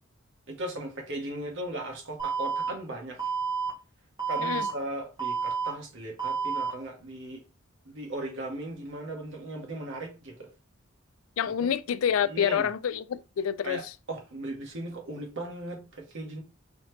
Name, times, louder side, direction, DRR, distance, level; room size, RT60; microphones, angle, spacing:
voice 1, 0.5-3.3 4.3-7.4 7.8-10.5 11.6-11.7 12.2-12.7 13.6-16.4, right 1 dB, 65° right, 1.4 m, -37 dB
Alarm, 2.2-2.7 3.2-3.7 4.2-4.7 5.2-5.7 6.2-6.7, right 5 dB, 20° right, 1.2 m, -29 dB
voice 2, 11.4-13.8, left 8 dB, 75° left, 0.3 m, -27 dB
4.0 x 3.0 x 3.3 m
head